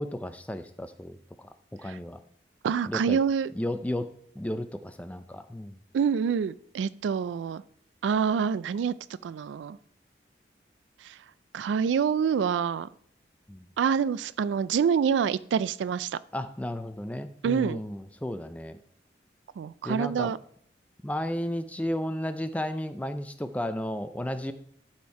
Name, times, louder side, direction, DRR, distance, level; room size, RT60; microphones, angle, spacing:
voice 1, 0.0-2.2 2.9-3.2 3.6-4.1 4.4-5.8 13.5-13.7 16.3-18.8 19.8-20.3 21.0-24.5, left 1 dB, 10° left, 10 dB, 0.4 m, -33 dB
voice 2, 2.6-3.5 5.9-7.6 8.0-8.9 9.2-9.8 11.0-11.2 11.5-12.9 13.8-16.2 17.4-17.8 19.6-20.4, right 7 dB, 90° right, 18 dB, 0.3 m, -26 dB
11.5 x 4.4 x 4.7 m, 0.66 s
head